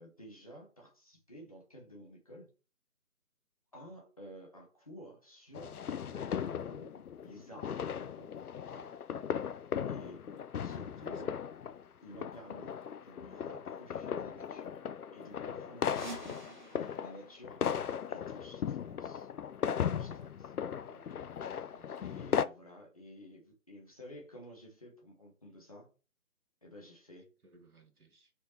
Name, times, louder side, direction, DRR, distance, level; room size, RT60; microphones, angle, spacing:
voice 1, 0.0-2.5 3.7-6.9 7.2-8.3 8.7-8.9 9.9-10.2 10.6-11.3 12.0-12.8 13.0-14.8 15.1-16.4 17.0-17.6 18.1-19.3 19.8-20.5 22.0-25.9 26.6-27.3, equal, 25° left, 0.8 m, -52 dB
sound 1, 5.5-22.4, left 8 dB, 80° left, 0.5 m, -37 dB
voice 2, 10.3-11.3 20.9-21.3 21.7-22.0 27.4-28.3, right 2 dB, 80° right, 1.4 m, -60 dB
sound 2, 15.8-18.5, right 3 dB, 30° right, 0.9 m, -50 dB
4.4 x 2.2 x 4.3 m
figure-of-eight pair, 155°, 44 cm